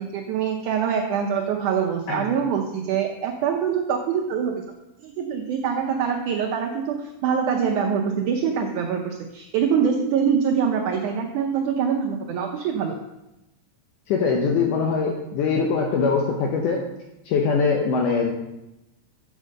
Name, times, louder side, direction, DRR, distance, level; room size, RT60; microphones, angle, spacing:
voice 1, 0.0-4.6 5.0-13.0, right 7 dB, 75° right, 2 dB, 1.9 m, -24 dB
voice 2, 14.1-16.8 17.3-18.3, left 5 dB, 75° left, 1 dB, 2.2 m, -22 dB
6.3 x 6.3 x 6.4 m, 0.93 s
omnidirectional pair, 4.0 m